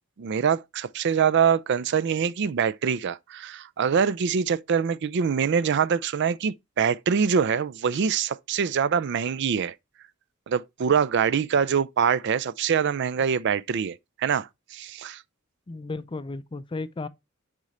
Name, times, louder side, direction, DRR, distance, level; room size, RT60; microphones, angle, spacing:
voice 1, 0.2-9.7 10.5-15.2, right 7 dB, 55° right, 0.4 m, -24 dB
voice 2, 15.7-17.1, left 3 dB, 25° left, 0.4 m, -34 dB
6.3 x 3.8 x 4.2 m
head